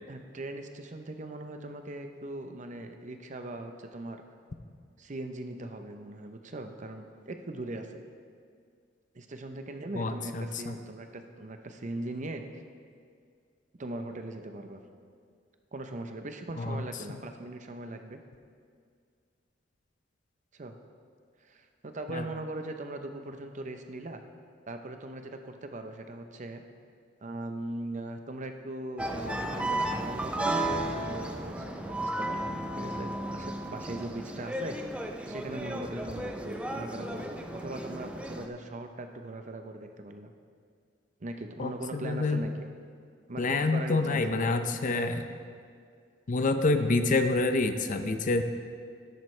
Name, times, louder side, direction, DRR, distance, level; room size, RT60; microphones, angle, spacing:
voice 1, 0.0-4.2 5.0-8.0 9.1-12.6 13.8-14.8 15.7-18.2 20.5-20.8 21.4-24.2 24.7-26.6 27.2-34.8 35.3-40.3 41.2-42.7 43.3-44.8, right 2 dB, 40° right, 6 dB, 0.7 m, -40 dB
voice 2, 9.9-10.7 16.6-16.8 22.1-22.2 41.6-42.4 43.4-45.3 46.3-48.4, left 3 dB, 45° left, 8 dB, 0.6 m, -27 dB
sound 1, 29.0-38.5, right 1 dB, 5° right, 0.6 m, -34 dB
12.5 x 11.0 x 3.2 m, 2.2 s
head